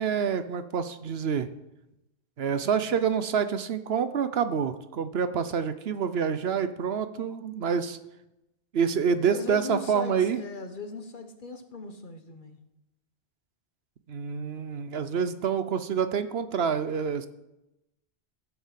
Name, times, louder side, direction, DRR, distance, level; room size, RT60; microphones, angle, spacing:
voice 1, 0.0-1.5 2.4-8.0 8.7-10.4 14.1-17.3, right 6 dB, 70° right, 11 dB, 1.0 m, -27 dB
voice 2, 9.3-12.6, left 3 dB, 50° left, 7 dB, 1.3 m, -39 dB
15.0 x 7.0 x 7.5 m, 0.93 s
omnidirectional pair, 1.1 m